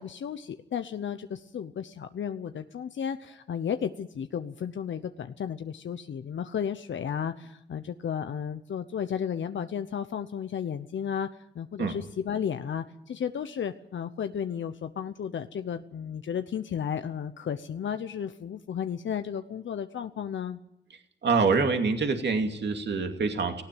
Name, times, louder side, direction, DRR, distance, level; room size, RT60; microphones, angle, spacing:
voice 1, 0.0-11.3 11.5-20.6, left 8 dB, 80° left, 9 dB, 0.9 m, -33 dB
voice 2, 21.2-23.6, right 4 dB, 65° right, 5 dB, 2.6 m, -25 dB
18.5 x 16.0 x 9.2 m, 0.83 s
cardioid pair, 80°, 19 cm